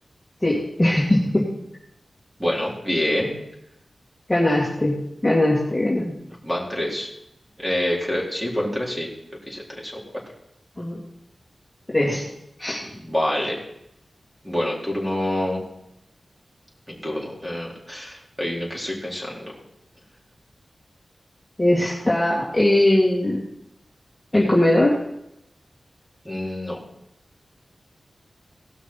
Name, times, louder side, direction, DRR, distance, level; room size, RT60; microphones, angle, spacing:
voice 1, 0.4-1.5 4.3-5.0 5.2-6.2 10.8-11.0 11.9-12.2 12.6-12.8 21.6-23.4 24.3-25.0, left 1 dB, 20° left, -5 dB, 2.4 m, -20 dB
voice 2, 2.4-3.3 6.4-7.1 7.6-9.1 9.5-10.0 12.8-13.6 14.4-15.6 16.9-19.6 26.2-26.8, left 1 dB, 5° right, -3 dB, 4.1 m, -27 dB
18.0 x 6.1 x 5.8 m, 0.83 s
wide cardioid pair, 70°, 0 cm